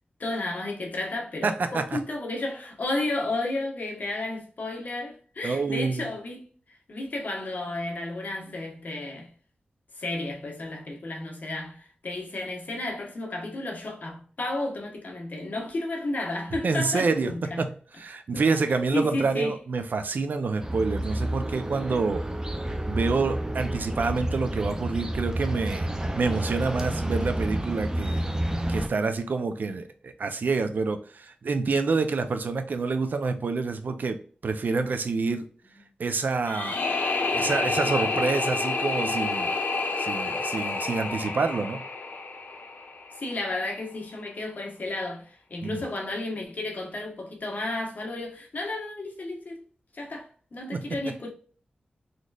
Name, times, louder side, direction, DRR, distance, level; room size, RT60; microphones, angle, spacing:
voice 1, 0.2-6.4 6.9-9.3 10.0-17.6 18.3-18.4 18.9-19.6 43.1-49.6 49.9-51.3, left 2 dB, 60° left, 1.2 m, -32 dB
voice 2, 1.4-2.0 5.4-6.1 16.6-22.2 22.9-25.9 26.2-28.2 28.7-35.5 36.0-36.8 37.3-39.5 40.0-41.9 45.6-45.8 50.7-51.0, right 4 dB, 70° right, 0.5 m, -27 dB
sound 1, 20.6-28.9, right 1 dB, 20° right, 0.5 m, -30 dB
sound 2, 36.4-43.4, left 3 dB, 90° left, 0.7 m, -29 dB
4.1 x 3.2 x 2.4 m
wide cardioid pair, 90°, 3 cm